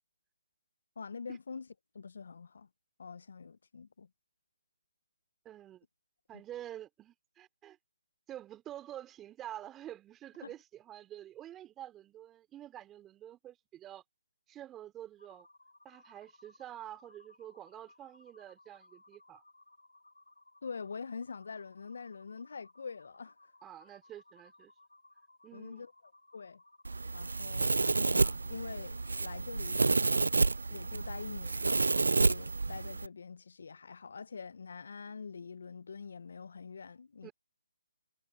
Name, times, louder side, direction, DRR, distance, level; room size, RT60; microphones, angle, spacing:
voice 1, 1.0-1.7 1.9-2.7 3.0-4.1 10.4-10.5 20.6-23.4 25.5-25.9 26.3-26.6 27.1-29.9 30.7-31.7 32.1-37.3, left 5 dB, 60° left, 1.1 m, -45 dB
voice 2, 5.4-5.9 6.3-7.8 8.3-14.0 14.5-15.5 15.8-19.4 23.6-24.7 25.4-25.9 37.2-37.3, right 12 dB, 15° right, 3.9 m, -48 dB
sound 1, 15.2-27.5, left 2 dB, 85° left, 7.6 m, -62 dB
Domestic sounds home sounds, 26.8-33.1, right 3 dB, 75° right, 0.4 m, -30 dB
figure-of-eight pair, 145°, 0 cm